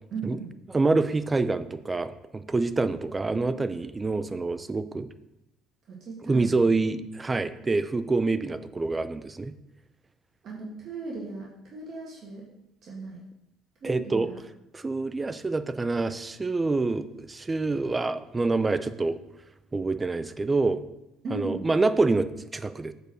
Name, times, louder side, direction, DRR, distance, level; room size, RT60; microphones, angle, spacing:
voice 1, 0.1-0.5 5.9-6.5 10.4-12.5 12.8-13.2 13.8-14.4 18.9-19.1 21.2-21.7, right 3 dB, 50° right, -3 dB, 1.9 m, -37 dB
voice 2, 0.7-5.1 6.3-9.5 13.8-14.3 14.7-19.2 19.7-20.8 21.3-22.9, right 3 dB, 20° right, 12 dB, 0.6 m, -26 dB
8.0 x 4.7 x 6.2 m, 0.89 s
supercardioid pair, 90°, 0 cm